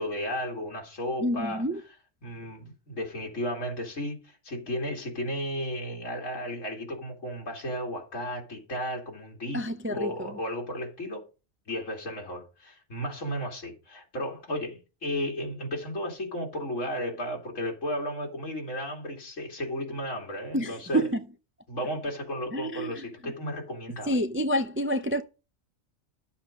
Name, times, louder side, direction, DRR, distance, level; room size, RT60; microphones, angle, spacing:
voice 1, 0.0-1.7 2.2-9.6 9.9-11.2 11.7-21.0 21.7-24.2, equal, 75° left, 2.9 m, -34 dB
voice 2, 1.2-1.8 9.5-10.4 20.5-21.2 22.5-23.3 24.1-25.2, equal, 15° right, 0.4 m, -28 dB
11.5 x 7.2 x 5.1 m
omnidirectional pair, 1.3 m